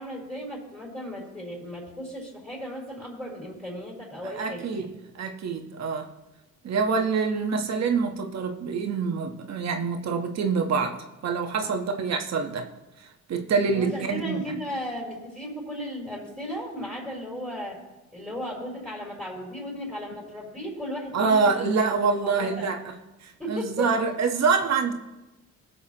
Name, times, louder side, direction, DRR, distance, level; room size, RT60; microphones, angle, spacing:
voice 1, 0.0-4.6 11.6-11.8 13.7-17.8 18.1-21.6 22.2-22.7 23.4-23.9 24.6-24.7, equal, ahead, -6 dB, 4.4 m, -35 dB
voice 2, 4.4-6.1 6.6-12.7 13.0-14.4 21.1-22.8 23.2-24.9, right 5 dB, 60° right, 4 dB, 1.2 m, -26 dB
20.0 x 6.9 x 3.0 m, 1.0 s
cardioid pair, 90°, 30 cm